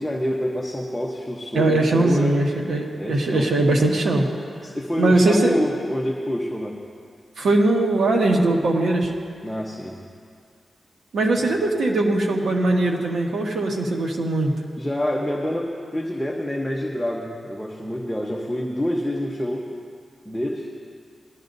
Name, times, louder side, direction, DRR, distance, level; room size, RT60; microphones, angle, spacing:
voice 1, 0.0-2.4 3.0-3.7 4.6-6.8 9.4-9.9 11.4-11.5 14.8-19.6 20.2-20.7, equal, 5° left, -2 dB, 1.0 m, -27 dB
voice 2, 1.5-4.3 5.0-5.6 7.4-9.1 11.1-14.5, right 2 dB, 90° right, -1 dB, 1.5 m, -20 dB
20.0 x 12.5 x 2.7 m, 2.2 s
wide cardioid pair, 110°, 0 cm